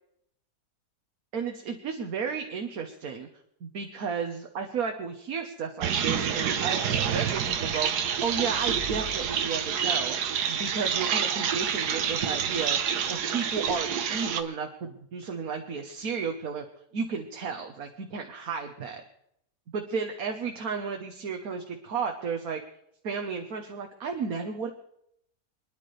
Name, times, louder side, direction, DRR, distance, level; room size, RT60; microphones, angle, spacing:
voice 1, 1.3-3.3 3.6-7.9 8.2-10.1 10.5-16.6 16.9-19.0 19.7-22.6 23.0-24.7, right 5 dB, 65° right, 3 dB, 1.6 m, -33 dB
sound 1, 5.8-14.4, right 8 dB, 85° right, 1.5 m, -28 dB
27.0 x 10.5 x 3.3 m, 0.73 s
omnidirectional pair, 1.7 m